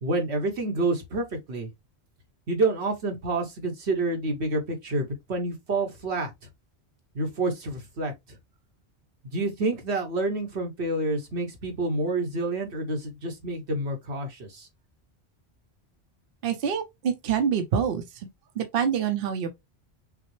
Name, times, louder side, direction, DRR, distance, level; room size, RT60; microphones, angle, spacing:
voice 1, 0.0-1.7 2.5-6.3 7.1-8.1 9.2-14.7, right 2 dB, 85° right, 1.4 m, -28 dB
voice 2, 16.4-18.3 18.6-19.5, right 7 dB, 65° right, 0.8 m, -26 dB
5.7 x 2.0 x 3.1 m
omnidirectional pair, 1.1 m